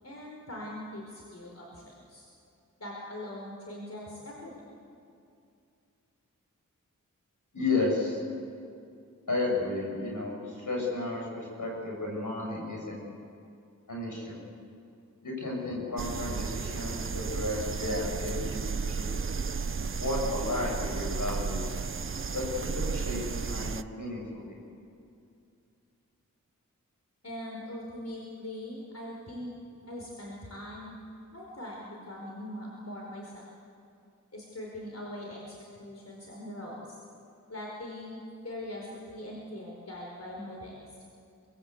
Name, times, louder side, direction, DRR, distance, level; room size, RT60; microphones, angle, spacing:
voice 1, 0.0-1.8 2.1-2.3 2.8-4.6 27.2-29.5 29.8-30.9 31.3-33.4 34.3-36.9 37.5-38.2 38.4-40.8, left 1 dB, 55° left, -3 dB, 5.0 m, -41 dB
voice 2, 7.5-8.2 9.3-13.0 13.9-14.4 15.2-19.1 20.0-21.7 22.3-24.6, left 2 dB, 75° left, -2 dB, 8.0 m, -33 dB
sound 1, 16.0-23.8, right 5 dB, 40° right, 0.7 m, -33 dB
23.5 x 21.5 x 8.2 m, 2.5 s
cardioid pair, 45°, 32 cm